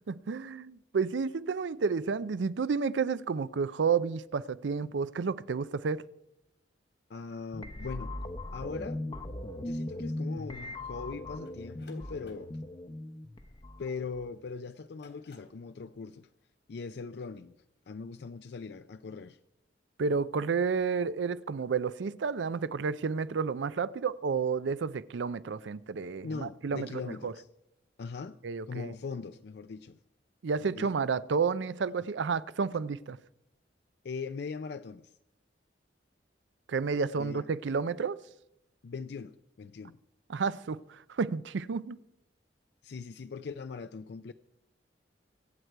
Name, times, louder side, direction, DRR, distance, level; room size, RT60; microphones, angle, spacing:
voice 1, 0.1-6.0 20.0-27.3 28.4-28.9 30.4-33.2 36.7-38.2 40.3-42.0, right 5 dB, 85° right, 0.5 m, -31 dB
voice 2, 7.1-8.1 8.5-9.0 9.6-12.5 13.8-16.3 16.7-17.5 17.9-19.4 26.2-27.5 28.0-28.4 28.7-30.0 30.6-31.1 32.0-32.1 34.0-35.1 37.1-37.5 38.8-40.0 42.8-44.3, left 4 dB, 65° left, 0.4 m, -40 dB
sound 1, 7.5-14.4, left 1 dB, 25° left, 0.7 m, -39 dB
sound 2, 11.4-14.2 14.8-15.7, left 3 dB, 80° left, 3.3 m, -60 dB
23.5 x 8.0 x 4.6 m
head